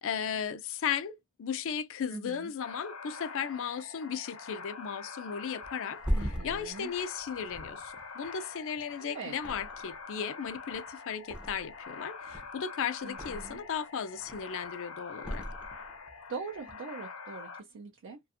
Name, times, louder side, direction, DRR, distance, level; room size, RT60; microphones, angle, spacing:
voice 1, 0.0-6.0 6.4-15.5, left 7 dB, 65° left, 0.4 m, -36 dB
voice 2, 2.1-2.5 6.1-6.9 9.0-9.4 13.0-13.6 16.3-18.2, right 4 dB, 60° right, 0.4 m, -42 dB
sound 1, 2.6-17.6, left 4 dB, 80° left, 0.8 m, -45 dB
Thump thud, 5.6-8.9 9.3-10.1 10.4-11.9 12.2-13.8 14.1-14.7 15.2-16.2 16.5-16.7, equal, 5° right, 0.5 m, -38 dB
2.4 x 2.2 x 2.7 m
head